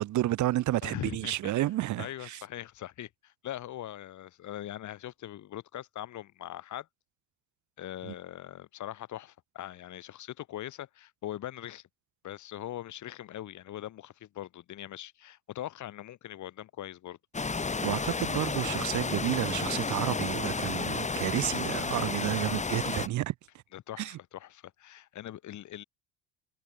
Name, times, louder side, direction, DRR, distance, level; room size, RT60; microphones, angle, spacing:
voice 1, 0.0-2.4 8.0-8.1 17.8-23.3 24.0-24.2, right 15 dB, 60° right, 1.3 m, -31 dB
voice 2, 0.8-1.5 2.0-6.9 7.8-11.9 12.2-17.2 23.7-25.8, left 12 dB, 60° left, 6.2 m, -41 dB
sound 1, 17.3-23.1, left 4 dB, 20° left, 4.1 m, -32 dB
cardioid pair, 105°, 34 cm